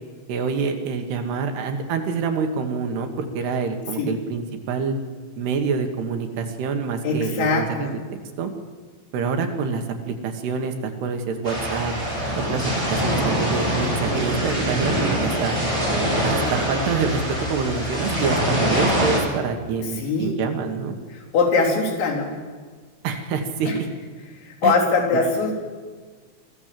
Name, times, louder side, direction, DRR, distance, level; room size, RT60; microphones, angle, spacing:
voice 1, 0.3-5.0 5.4-7.9 8.4-8.5 9.1-11.9 12.5-15.6 16.2-20.9 23.0-23.9 24.6-24.7, right 5 dB, 70° right, 5 dB, 3.3 m, -26 dB
voice 2, 7.0-7.9 20.0-20.3 21.3-22.3 23.7-23.8 24.4-25.5, left 4 dB, 80° left, -3 dB, 6.3 m, -21 dB
sound 1, 11.4-19.2, equal, 5° right, 5.5 m, -24 dB
23.5 x 15.0 x 7.6 m, 1.5 s
omnidirectional pair, 5.3 m